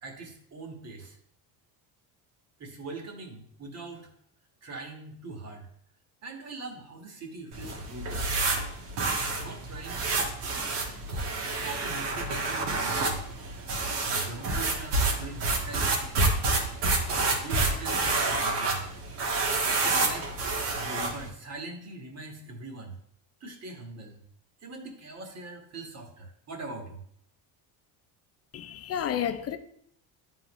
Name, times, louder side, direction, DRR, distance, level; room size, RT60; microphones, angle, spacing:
voice 1, 0.0-1.2 2.6-4.1 4.6-5.7 6.2-8.3 9.4-10.3 11.1-13.2 14.0-16.3 17.4-18.8 19.8-23.0 23.4-24.2 24.6-27.0, right 2 dB, 40° right, 1.5 m, -42 dB
sound 1, 7.5-21.3, right 3 dB, 75° right, 1.6 m, -28 dB
voice 2, 28.5-29.6, left 9 dB, 35° left, 0.6 m, -31 dB
10.5 x 3.9 x 3.0 m
cardioid pair, 120°, 41 cm